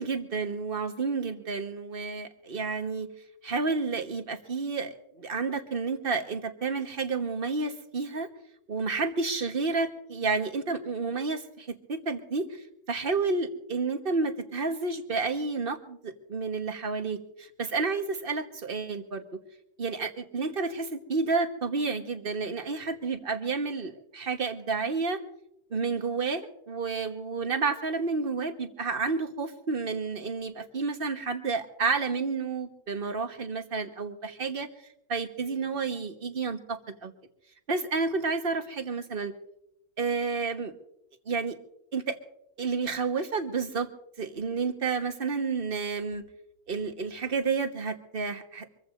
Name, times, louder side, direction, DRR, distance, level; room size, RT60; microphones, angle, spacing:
voice 1, 0.0-3.1 3.4-8.3 8.7-19.2 19.8-25.2 25.7-34.7 35.1-37.1 37.7-39.3 40.0-40.7 41.3-41.6 41.9-42.2 42.6-43.9 44.2-46.2 46.7-48.7, right 4 dB, 40° right, 6 dB, 1.4 m, -30 dB
25.5 x 15.0 x 2.6 m, 0.80 s
omnidirectional pair, 1.5 m